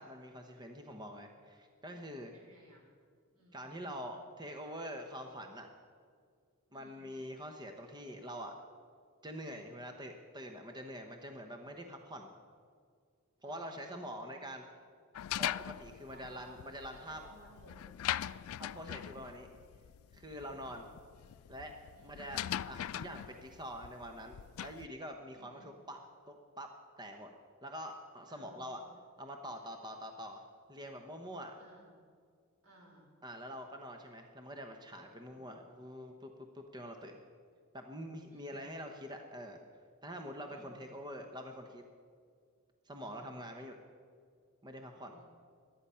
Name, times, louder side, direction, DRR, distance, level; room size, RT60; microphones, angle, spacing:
voice 1, 0.0-2.3 3.5-5.7 6.7-8.5 9.2-12.3 13.4-14.6 15.4-17.2 18.6-19.5 20.1-20.9 21.5-21.7 22.0-22.4 22.7-26.0 26.3-26.7 27.0-27.3 27.6-28.8 29.2-30.4 30.7-31.5 33.2-37.2 37.7-39.6 40.0-41.8 42.8-43.7 44.6-45.1, equal, 20° right, 4 dB, 0.9 m, -45 dB
voice 2, 2.3-2.9 3.3-3.7 6.7-7.1 13.4-14.5 15.9-16.5 16.9-18.5 20.0-20.8 21.9-22.3 25.3-25.7 28.3-28.8 31.5-31.9 32.6-33.1 35.3-35.6 38.3-38.7 40.5-40.8 43.0-43.3 45.1-45.3, right 1 dB, 80° right, -2 dB, 4.9 m, -61 dB
sound 1, 15.1-24.9, left 11 dB, 75° left, 0.3 m, -41 dB
17.0 x 12.0 x 5.6 m, 2.1 s
head